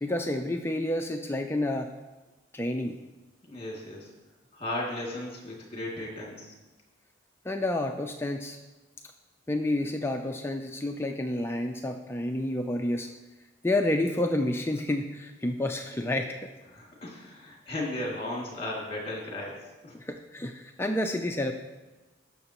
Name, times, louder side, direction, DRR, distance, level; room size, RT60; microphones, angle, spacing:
voice 1, 0.0-1.9 2.5-3.0 7.4-8.6 9.5-13.1 13.6-16.5 19.9-21.5, left 1 dB, 10° left, 3 dB, 0.4 m, -29 dB
voice 2, 3.5-4.1 4.5-6.6 16.7-20.0, left 1 dB, 30° left, -3 dB, 2.4 m, -36 dB
19.0 x 6.5 x 3.0 m, 1.1 s
head